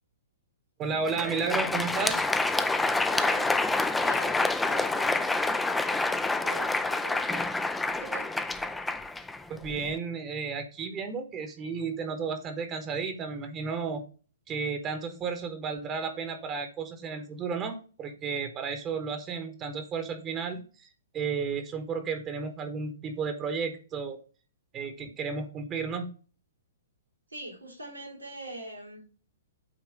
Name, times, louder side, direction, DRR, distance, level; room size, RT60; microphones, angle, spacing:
voice 1, 0.8-2.2 9.5-14.0 14.5-20.9 21.1-24.2 24.7-26.1, right 5 dB, 25° right, 1.1 m, -33 dB
Crowd, 0.9-9.9, left 3 dB, 5° left, 0.5 m, -28 dB
voice 2, 3.1-3.5 4.0-7.5 7.9-8.3 27.3-29.0, right 2 dB, 90° right, 2.9 m, -43 dB
8.8 x 3.0 x 4.8 m
figure-of-eight pair, 115°, 0 cm